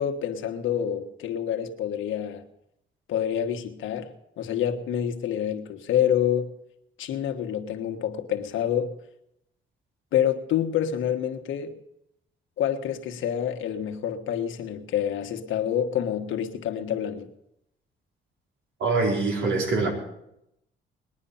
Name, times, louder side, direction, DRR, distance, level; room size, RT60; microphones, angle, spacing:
voice 1, 0.0-2.4 3.1-6.5 7.0-8.9 10.1-11.7 12.6-17.3, left 9 dB, 80° left, 5 dB, 1.5 m, -27 dB
voice 2, 18.8-19.9, right 3 dB, 80° right, 0 dB, 4.3 m, -24 dB
20.5 x 9.9 x 5.7 m, 0.81 s
cardioid pair, 90°, 20 cm